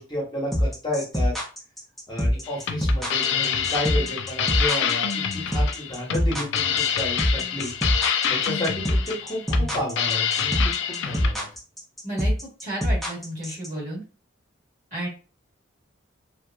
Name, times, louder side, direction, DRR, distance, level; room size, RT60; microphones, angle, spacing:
voice 1, 0.0-1.3 2.1-5.1 5.3-7.7 8.3-10.5 10.9-11.4, left 1 dB, 20° left, -4 dB, 1.0 m, -31 dB
sound 1, 0.5-13.7, equal, ahead, 0.5 m, -24 dB
sound 2, 2.4-11.3, left 8 dB, 60° left, 0.3 m, -27 dB
voice 2, 12.6-14.0 14.9-15.1, right 1 dB, 40° right, -5 dB, 1.2 m, -32 dB
2.9 x 2.4 x 2.2 m, 0.34 s
head